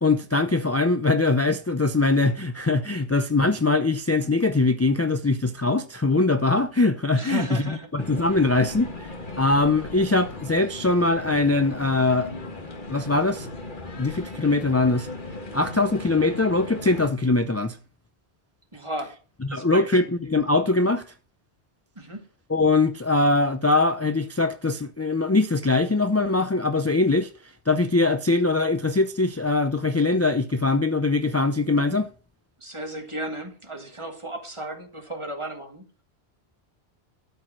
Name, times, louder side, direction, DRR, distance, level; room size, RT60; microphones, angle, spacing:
voice 1, 0.0-7.5 7.9-8.9 9.4-12.3 12.9-13.5 14.0-15.1 15.5-17.8 19.5-21.1 22.5-27.3 27.7-32.1, left 3 dB, 25° left, 0.3 m, -22 dB
voice 2, 7.1-8.3 18.7-19.2 19.5-19.9 22.0-22.2 32.6-35.8, right 1 dB, 25° right, 1.7 m, -34 dB
sound 1, 8.0-17.1, left 2 dB, 50° left, 1.6 m, -37 dB
12.5 x 4.7 x 6.1 m
omnidirectional pair, 1.1 m